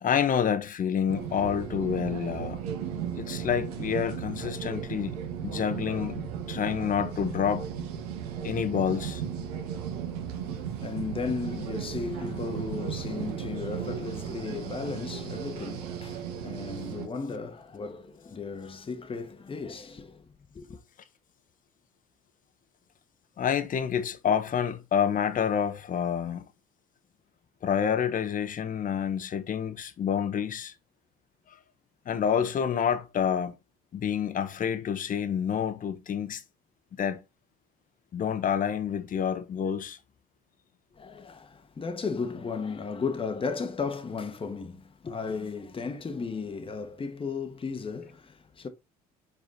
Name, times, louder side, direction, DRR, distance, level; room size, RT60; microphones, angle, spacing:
voice 1, 0.0-2.6 3.2-5.2 5.4-7.7 8.4-9.2 23.4-26.4 27.6-30.7 32.1-33.6 33.9-36.4 37.0-37.2 38.1-40.0, left 8 dB, 45° left, 1.1 m, -28 dB
sound 1, 1.1-17.1, right 8 dB, 85° right, 1.4 m, -35 dB
voice 2, 10.3-20.3 20.5-20.8 40.9-48.7, left 5 dB, 25° left, 1.3 m, -35 dB
5.3 x 4.9 x 3.9 m
hypercardioid pair, 65°, 20 cm